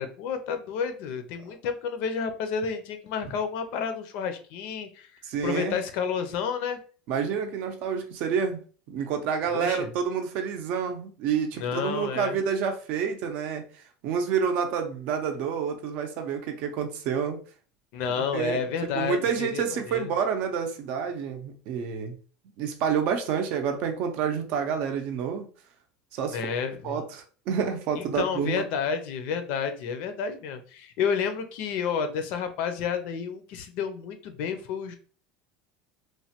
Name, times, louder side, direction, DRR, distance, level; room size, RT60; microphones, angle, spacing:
voice 1, 0.0-5.1 5.4-6.8 9.5-9.9 11.5-12.4 17.9-20.1 26.3-27.0 28.0-35.0, left 6 dB, 55° left, 0.5 m, -30 dB
voice 2, 5.2-5.8 7.1-8.6 8.9-13.6 14.0-17.4 18.3-18.6 18.9-22.1 22.6-25.5 26.1-26.4 26.8-28.6, right 7 dB, 50° right, 0.5 m, -28 dB
3.1 x 2.2 x 2.8 m
cardioid pair, 160°, 3 cm